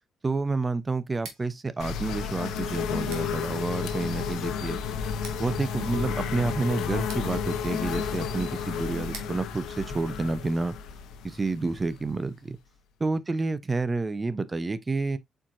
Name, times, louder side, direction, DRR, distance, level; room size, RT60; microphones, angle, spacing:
voice 1, 0.2-4.8 5.4-10.8 11.2-12.6 13.0-15.2, right 3 dB, 25° right, 0.5 m, -29 dB
Scissors, 1.1-10.9, right 5 dB, 90° right, 1.3 m, -52 dB
sound 1, 1.8-12.4, left 7 dB, 85° left, 0.7 m, -32 dB
4.5 x 4.4 x 2.5 m
cardioid pair, 90°, 0 cm